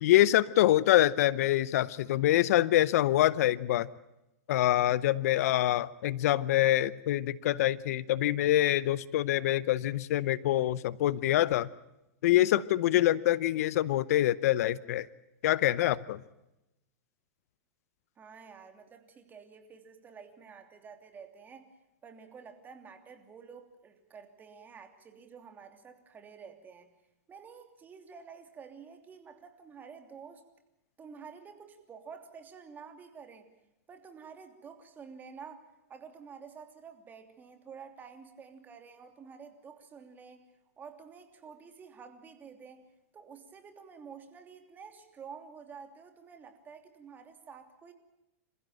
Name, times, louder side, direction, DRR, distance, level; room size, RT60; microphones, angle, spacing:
voice 1, 0.0-3.9 4.5-11.7 12.2-15.1 15.4-16.2, left 14 dB, 65° left, 19 dB, 0.7 m, -25 dB
voice 2, 18.2-21.7 22.0-26.9 27.3-30.4 31.0-33.5 33.9-40.5 40.8-42.9 43.1-47.9, right 6 dB, 20° right, 6 dB, 3.1 m, -50 dB
27.5 x 15.5 x 9.0 m, 0.92 s
hypercardioid pair, 130°, 9 cm